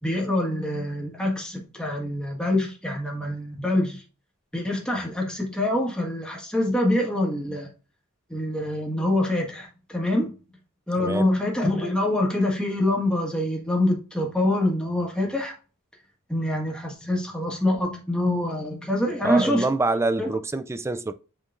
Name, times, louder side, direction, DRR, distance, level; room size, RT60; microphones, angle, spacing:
voice 1, 0.0-4.0 4.5-7.7 8.3-10.3 10.9-15.5 16.3-19.6 20.2-20.3, left 1 dB, 5° left, 1.6 m, -25 dB
voice 2, 11.0-11.3 19.2-21.1, right 2 dB, 10° right, 0.3 m, -25 dB
7.5 x 4.9 x 2.6 m
head